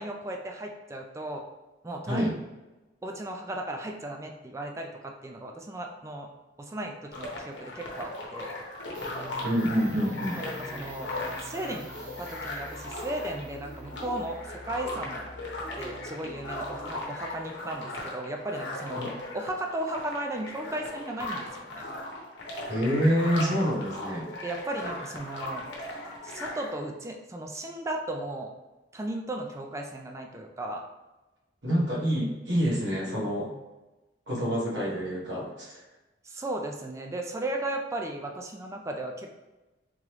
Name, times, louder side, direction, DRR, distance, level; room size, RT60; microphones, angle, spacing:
voice 1, 0.0-1.4 1.8-2.3 3.0-6.3 6.6-8.6 10.3-11.1 11.4-11.8 12.2-15.3 15.8-19.0 19.3-21.9 24.4-25.6 26.2-28.5 28.9-30.8 36.2-39.5, right 1 dB, 15° right, 2 dB, 0.3 m, -35 dB
sound 1, 7.1-26.8, left 1 dB, 85° left, 0.9 m, -38 dB
sound 2, 8.9-17.4, left 1 dB, 50° right, 0.9 m, -47 dB
voice 2, 9.4-10.4 18.9-19.1 22.7-24.2 31.6-33.5 34.3-35.8, equal, 80° right, -5 dB, 1.3 m, -27 dB
3.7 x 3.0 x 3.1 m, 1.1 s
head